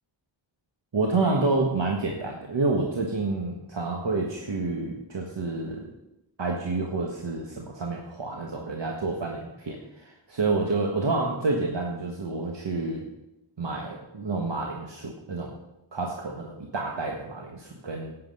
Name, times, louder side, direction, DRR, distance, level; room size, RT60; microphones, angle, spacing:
voice 1, 0.9-5.9 6.4-13.0 13.6-15.5 15.9-18.1, right 3 dB, 70° right, 0 dB, 1.5 m, -29 dB
11.5 x 8.6 x 5.5 m, 0.91 s
wide cardioid pair, 65°, 45 cm